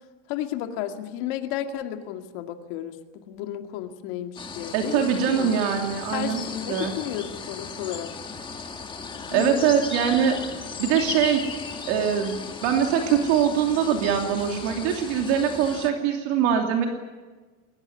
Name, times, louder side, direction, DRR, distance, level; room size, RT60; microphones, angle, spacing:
voice 1, 0.3-5.5 6.1-8.1 9.3-9.8, left 11 dB, 45° left, 6 dB, 2.2 m, -33 dB
sound 1, 4.4-15.9, left 5 dB, 10° left, 1.6 m, -36 dB
voice 2, 4.7-6.4 6.7-6.9 9.3-10.4 10.8-11.5 11.9-16.9, right 8 dB, 55° right, 3 dB, 3.0 m, -23 dB
21.5 x 20.5 x 9.7 m, 1.3 s
supercardioid pair, 160°, 40 cm